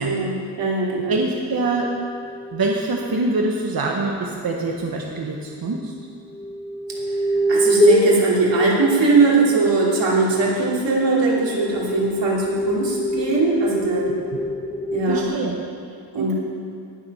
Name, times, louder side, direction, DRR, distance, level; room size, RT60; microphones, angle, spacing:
voice 1, 0.0-1.2 7.5-14.1 14.9-15.3 16.1-16.3, right 3 dB, 90° right, -4 dB, 3.0 m, -20 dB
voice 2, 1.1-1.9 2.5-5.9 15.1-15.5 16.2-16.3, right 3 dB, 55° right, 0 dB, 1.1 m, -24 dB
sound 1, 1.6-3.3 4.9-5.0 6.3-9.9 10.8-15.2, left 1 dB, 15° left, 1.1 m, -24 dB
18.5 x 7.3 x 5.6 m, 2.5 s
wide cardioid pair, 155°, 42 cm